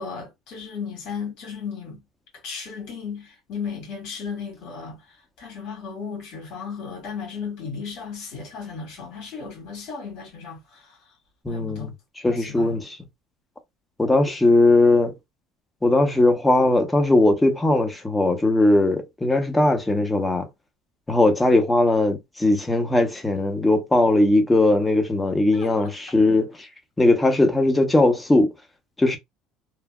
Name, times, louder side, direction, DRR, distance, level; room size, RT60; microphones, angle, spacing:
voice 1, 0.0-2.0 2.4-11.0 11.5-11.9 12.3-12.8 25.5-25.9, left 6 dB, 65° left, 1.9 m, -35 dB
voice 2, 11.4-11.9 12.2-12.8 14.0-15.1 15.8-20.5 21.1-26.7 27.0-28.5 29.0-29.2, left 2 dB, 15° left, 0.8 m, -19 dB
3.2 x 2.2 x 2.3 m
supercardioid pair, 95°, 0 cm